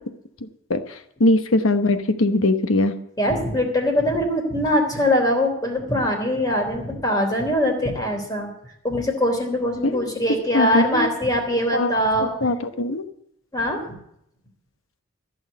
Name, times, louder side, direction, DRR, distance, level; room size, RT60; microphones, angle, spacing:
voice 1, 0.7-2.9 9.8-10.1 10.5-11.1 11.7-11.9 12.4-13.0, left 2 dB, 80° left, 9 dB, 1.0 m, -21 dB
voice 2, 3.2-8.5 8.8-12.3 13.5-13.8, left 1 dB, 20° left, 2 dB, 3.3 m, -22 dB
15.0 x 6.4 x 9.2 m, 0.74 s
head